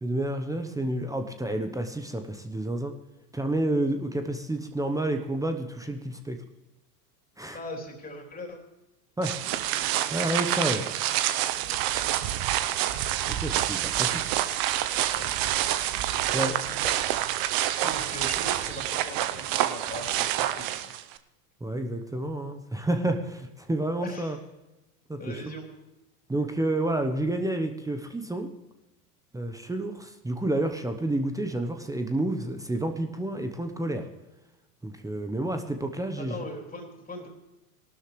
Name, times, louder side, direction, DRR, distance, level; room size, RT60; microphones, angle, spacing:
voice 1, 0.0-2.9 3.3-6.4 7.4-7.6 9.2-9.4 10.1-10.8 13.3-14.3 16.3-16.5 21.6-24.4 25.1-25.2 26.3-28.5 29.3-34.1 34.8-36.4, right 1 dB, 5° right, 6 dB, 1.0 m, -29 dB
voice 2, 7.5-8.6 15.2-15.4 16.3-16.9 17.8-20.9 24.0-24.4 25.2-25.7 36.2-37.3, left 1 dB, 20° left, 1 dB, 3.4 m, -40 dB
sound 1, 9.2-21.2, right 13 dB, 45° right, 0.9 m, -27 dB
19.0 x 12.5 x 3.3 m, 0.98 s
hypercardioid pair, 95°, 47 cm